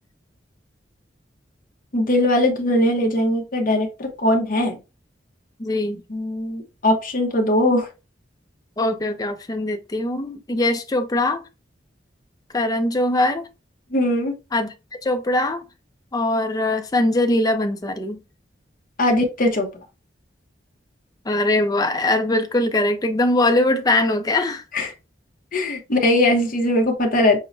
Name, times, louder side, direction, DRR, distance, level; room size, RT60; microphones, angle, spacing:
voice 1, 1.9-4.8 6.1-7.9 13.9-14.3 19.0-19.7 24.7-24.9 25.5-27.4, left 1 dB, 50° left, 0.9 m, -20 dB
voice 2, 5.6-6.0 8.8-11.4 12.5-13.4 14.5-14.7 15.0-15.6 16.1-18.2 21.3-24.6, left 2 dB, 20° left, 0.5 m, -21 dB
6.2 x 2.1 x 2.6 m
head